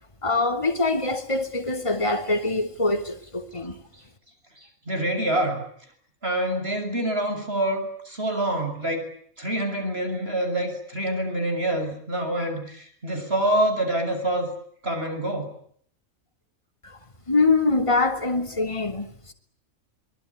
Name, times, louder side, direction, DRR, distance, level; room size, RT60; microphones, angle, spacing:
voice 1, 0.2-3.8 16.8-17.0 17.3-19.3, left 3 dB, 20° left, 3.1 m, -24 dB
voice 2, 4.9-5.6 6.2-9.1 9.4-14.5 14.8-15.5, right 1 dB, 45° right, 7.2 m, -26 dB
25.0 x 22.0 x 9.8 m
omnidirectional pair, 1.5 m